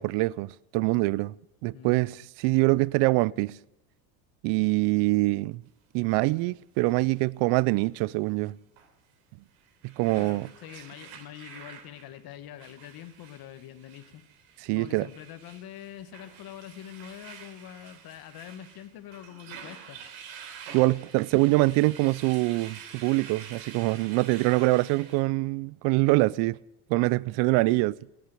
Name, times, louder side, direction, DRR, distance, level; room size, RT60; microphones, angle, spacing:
voice 1, 0.0-1.3 1.6-3.6 4.4-5.6 5.9-8.6 9.8-10.5 14.6-15.1 20.7-26.6 26.9-28.0, right 22 dB, 60° right, 0.5 m, -24 dB
voice 2, 1.7-2.3 10.1-14.2 14.7-20.0 24.6-24.8 27.6-27.7, left 11 dB, 50° left, 1.5 m, -45 dB
sound 1, 6.3-6.4 8.8-8.9 9.5-25.2, right 7 dB, 80° right, 3.3 m, -48 dB
18.0 x 8.7 x 8.9 m
supercardioid pair, 115°, 45 cm